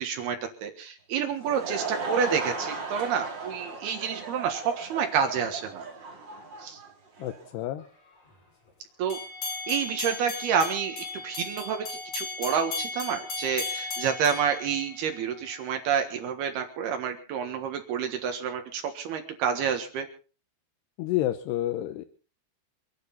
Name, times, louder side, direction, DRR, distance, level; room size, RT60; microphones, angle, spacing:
voice 1, 0.0-5.9 6.6-6.8 9.0-9.2 9.7-11.9 12.1-20.1, right 7 dB, 75° right, 5 dB, 3.5 m, -29 dB
Laughter / Crowd, 1.2-7.5, right 4 dB, 30° right, 2.8 m, -36 dB
voice 2, 7.2-7.8 21.0-22.1, left 14 dB, 85° left, 9 dB, 3.0 m, -29 dB
sound 1, 9.1-15.3, left 3 dB, 45° left, 6.8 m, -36 dB
28.5 x 9.9 x 4.0 m, 0.37 s
omnidirectional pair, 4.6 m